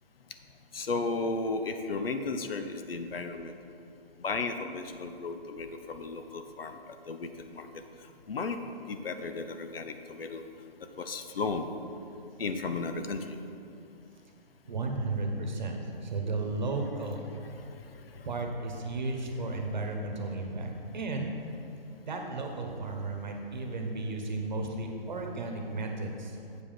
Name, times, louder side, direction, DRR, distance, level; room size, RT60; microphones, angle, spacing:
voice 1, 0.7-3.5 4.2-7.8 8.3-8.6 8.9-10.5 11.0-11.7 12.4-13.4 17.6-18.3, left 3 dB, 75° left, 7 dB, 0.8 m, -35 dB
voice 2, 14.7-17.3 18.2-21.3 22.0-26.4, right 2 dB, 50° right, 2 dB, 1.1 m, -34 dB
8.2 x 5.3 x 5.6 m, 2.6 s
hypercardioid pair, 170°, 29 cm